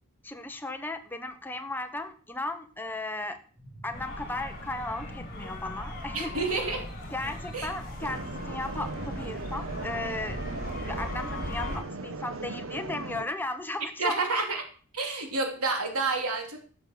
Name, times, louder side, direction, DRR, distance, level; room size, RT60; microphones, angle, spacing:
voice 1, 0.2-3.4 3.8-6.3 7.1-10.4 10.9-14.2, left 2 dB, 10° left, 7 dB, 0.9 m, -35 dB
sound 1, 3.5-10.4, right 1 dB, 35° right, 3.9 m, -50 dB
sound 2, 3.9-11.8, left 1 dB, 40° left, 3.3 m, -39 dB
voice 2, 6.1-6.9 7.5-7.7 14.0-14.6 14.9-16.6, right 3 dB, 90° right, 3 dB, 2.9 m, -29 dB
sound 3, 8.0-13.2, right 3 dB, 65° right, 0.9 m, -38 dB
12.0 x 6.5 x 5.9 m, 0.42 s
head